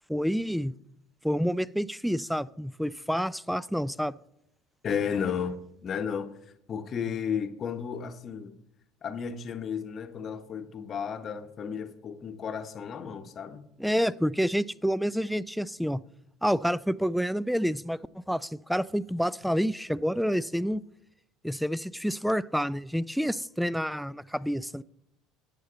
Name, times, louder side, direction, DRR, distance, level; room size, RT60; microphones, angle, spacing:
voice 1, 0.1-0.7 1.2-4.1 13.8-16.0 16.4-18.0 18.3-20.8 21.4-24.8, equal, ahead, 0.3 m, -28 dB
voice 2, 4.8-6.3 6.7-8.6 9.0-13.7, left 7 dB, 40° left, 0.9 m, -33 dB
11.0 x 8.0 x 3.9 m
hypercardioid pair, 80°, 0 cm